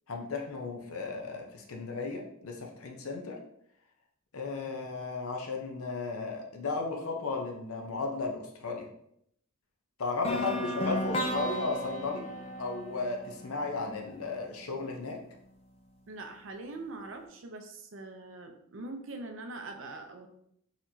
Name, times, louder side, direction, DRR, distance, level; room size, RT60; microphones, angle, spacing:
voice 1, 0.1-3.4 4.3-8.9 10.0-12.2 12.6-15.2, left 3 dB, 80° left, 2 dB, 0.7 m, -35 dB
sound 1, 10.2-14.2, equal, 30° left, 0.3 m, -34 dB
voice 2, 16.1-20.3, right 2 dB, 60° right, 5 dB, 0.6 m, -43 dB
4.1 x 3.0 x 2.7 m, 0.72 s
head